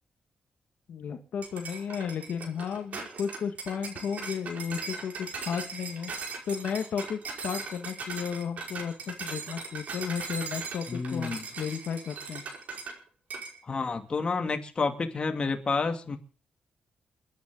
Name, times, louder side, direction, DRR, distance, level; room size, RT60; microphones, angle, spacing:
voice 1, 0.9-6.1 6.4-12.4, left 7 dB, 80° left, 6 dB, 1.8 m, -34 dB
sound 1, 1.4-13.0 13.3-13.6, right 4 dB, 65° right, 5.3 m, -39 dB
voice 2, 10.9-11.4 13.7-16.2, left 4 dB, 35° left, 6 dB, 2.5 m, -29 dB
30.0 x 10.5 x 3.9 m, 0.36 s
cardioid pair, 115°, 3 cm